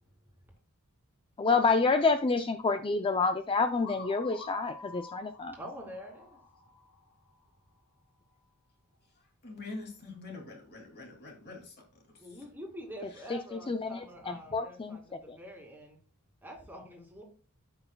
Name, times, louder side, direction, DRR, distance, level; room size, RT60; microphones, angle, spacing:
voice 1, 1.4-5.5 13.3-15.0 15.3-15.4, left 4 dB, 25° left, 0.4 m, -28 dB
sound 1, 3.6-7.4, left 3 dB, 70° left, 3.1 m, -48 dB
voice 2, 5.5-6.4 12.2-16.0 16.4-17.2, equal, 10° right, 2.3 m, -46 dB
voice 3, 9.4-11.8 12.3-12.4 13.1-13.2 14.3-14.4, left 3 dB, 50° left, 2.5 m, -44 dB
13.0 x 5.6 x 2.2 m
head